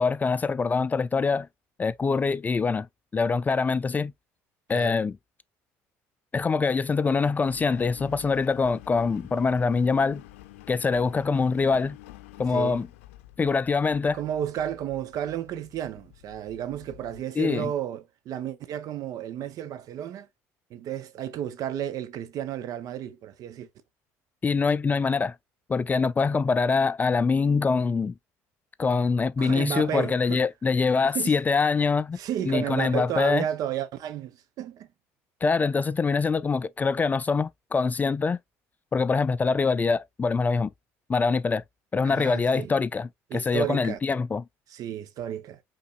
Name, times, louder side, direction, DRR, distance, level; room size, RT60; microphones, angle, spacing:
voice 1, 0.0-1.5 1.8-2.9 3.1-4.1 4.7-5.2 6.3-10.2 10.7-12.0 12.4-12.9 13.4-14.2 17.4-17.7 24.4-25.4 25.7-28.1 28.8-32.2 32.5-33.4 35.4-38.4 38.9-40.7 41.1-41.6 41.9-44.4, left 4 dB, 25° left, 0.3 m, -24 dB
Engine, 7.4-17.2, left 16 dB, 90° left, 0.5 m, -48 dB
voice 2, 12.5-12.8 14.1-20.3 20.7-23.7 29.4-30.4 31.1-31.4 32.2-34.9 42.0-42.8 43.3-44.0 44.7-45.6, right 10 dB, 60° right, 0.8 m, -32 dB
5.2 x 3.7 x 2.4 m
supercardioid pair, 80°, 7 cm